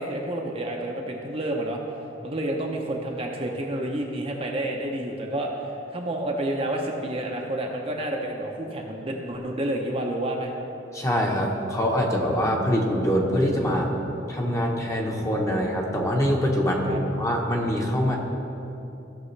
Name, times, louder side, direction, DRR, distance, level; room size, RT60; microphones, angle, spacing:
voice 1, 0.0-1.8 2.2-10.5 16.8-17.0, right 1 dB, 30° right, 0 dB, 0.7 m, -29 dB
voice 2, 10.9-13.9 14.3-18.2, equal, 15° left, -1 dB, 1.0 m, -24 dB
15.0 x 6.2 x 3.3 m, 2.9 s
head